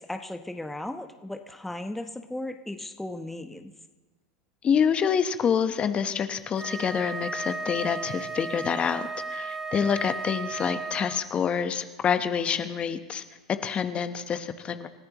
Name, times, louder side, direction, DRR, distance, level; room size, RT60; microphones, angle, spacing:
voice 1, 0.0-3.7, left 1 dB, 5° left, 6 dB, 1.0 m, -36 dB
voice 2, 4.6-13.2 13.5-14.9, left 7 dB, 30° left, 9 dB, 1.1 m, -27 dB
Wind instrument woodwind instrument, 6.6-11.3, right 3 dB, 15° right, 1.4 m, -35 dB
28.0 x 14.5 x 3.1 m, 1.2 s
hypercardioid pair, 90°, 4 cm